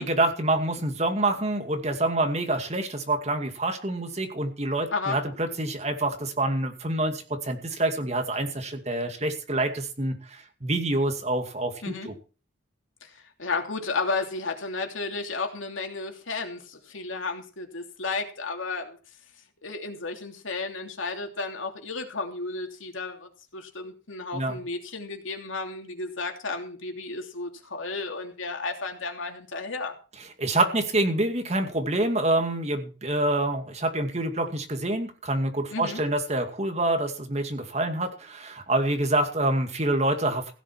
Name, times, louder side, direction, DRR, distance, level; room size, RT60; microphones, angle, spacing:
voice 1, 0.0-12.1 24.3-24.6 30.4-40.5, right 2 dB, 35° right, 5 dB, 2.3 m, -27 dB
voice 2, 13.0-19.0 19.6-29.9 35.7-36.0, left 3 dB, 90° left, 4 dB, 3.0 m, -33 dB
16.0 x 7.7 x 6.1 m, 0.36 s
head